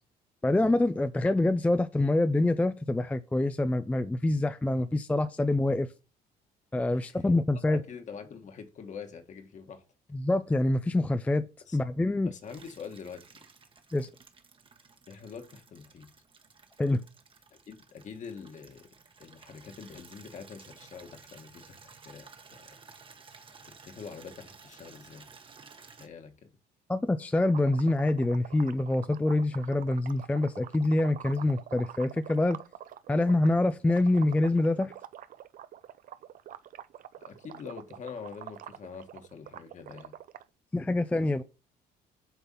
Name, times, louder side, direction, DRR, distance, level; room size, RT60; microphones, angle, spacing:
voice 1, 0.4-5.9 6.7-7.8 10.1-11.4 11.7-12.3 13.9-14.1 16.8-17.0 26.9-32.6 33.1-34.9 40.7-41.4, left 2 dB, 10° left, 0.4 m, -26 dB
voice 2, 6.9-7.2 7.7-9.8 11.7-11.8 12.2-13.2 15.1-16.1 17.5-18.9 19.2-22.8 23.6-25.3 25.9-26.5 37.2-40.1, left 6 dB, 45° left, 1.6 m, -45 dB
Water tap faucet / Liquid, 12.4-26.1, right 5 dB, 30° right, 1.2 m, -54 dB
sound 1, 27.5-33.5 33.8-40.4, right 11 dB, 55° right, 0.6 m, -46 dB
8.1 x 4.0 x 5.6 m
cardioid pair, 110°, 17 cm